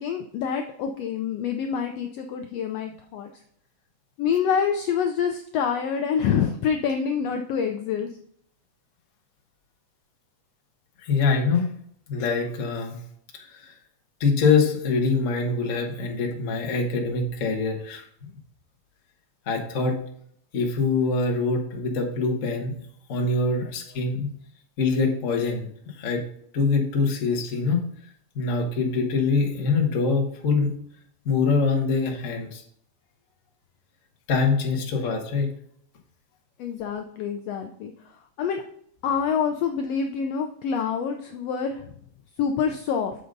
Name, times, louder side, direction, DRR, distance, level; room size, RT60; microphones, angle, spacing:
voice 1, 0.0-3.3 4.2-8.1 23.6-23.7 36.6-37.9 38.4-38.6 39.0-41.8 42.4-43.1, left 7 dB, 80° left, 5 dB, 1.5 m, -26 dB
voice 2, 11.0-11.7 12.1-13.0 13.3-13.7 14.2-18.0 19.5-20.0 20.5-22.7 23.1-24.3 24.8-26.2 26.5-27.8 28.3-30.7 31.2-32.6 34.3-35.5, left 4 dB, 50° left, 1 dB, 0.9 m, -24 dB
6.9 x 5.1 x 5.3 m, 0.66 s
omnidirectional pair, 3.5 m